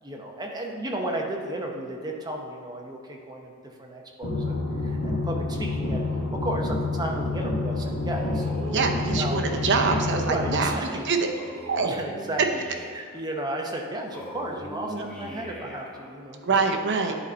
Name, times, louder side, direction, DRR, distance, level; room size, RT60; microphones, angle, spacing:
voice 1, 0.0-3.5 3.8-6.0 6.3-9.4 10.2-11.0 11.8-12.4 12.9-16.6, right 1 dB, 20° right, 0 dB, 0.8 m, -34 dB
sound 1, 4.2-10.7, left 2 dB, 90° left, 1.3 m, -28 dB
Male speech man speaking, 8.1-10.3 11.4-13.2 14.1-16.1, equal, 5° left, 1.0 m, -40 dB
voice 2, 8.6-11.3 11.6-11.9 14.9-15.1 16.4-17.2, right 4 dB, 55° right, 4 dB, 0.7 m, -25 dB
10.0 x 4.1 x 4.4 m, 2.3 s
head